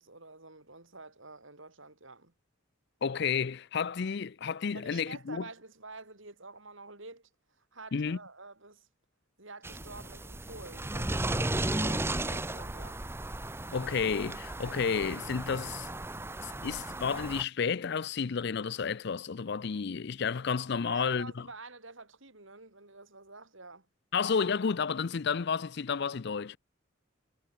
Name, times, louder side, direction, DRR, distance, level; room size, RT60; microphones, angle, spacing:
voice 1, 0.0-2.3 4.7-7.3 7.6-8.9 9.4-13.1 20.8-23.9, right 3 dB, 65° right, 4.9 m, -49 dB
voice 2, 3.0-5.4 7.9-8.2 13.7-15.9 16.4-21.5 24.1-26.6, left 6 dB, 50° left, 0.5 m, -31 dB
sound 1, 9.6-17.4, right 2 dB, 10° right, 0.8 m, -35 dB
head